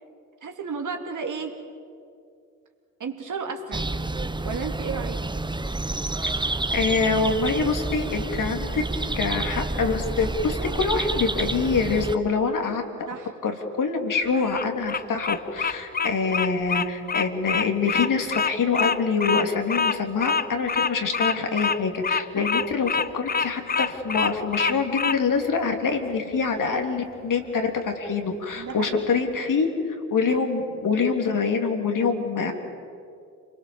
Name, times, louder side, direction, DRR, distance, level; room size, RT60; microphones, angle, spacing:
voice 1, 0.4-1.6 3.0-3.9 4.4-5.2 13.1-13.3 22.4-22.5 28.5-29.1 32.4-32.5, right 5 dB, 45° right, 3 dB, 3.0 m, -33 dB
sound 1, 3.7-12.2, right 2 dB, 10° right, 1.1 m, -29 dB
voice 2, 6.7-8.8 9.1-13.1 13.4-32.5, left 4 dB, 45° left, 4 dB, 3.2 m, -25 dB
Bird vocalization bird call bird song, 14.3-25.2, left 5 dB, 20° left, 0.8 m, -26 dB
28.5 x 21.5 x 7.2 m, 2.4 s
figure-of-eight pair, 45°, 43 cm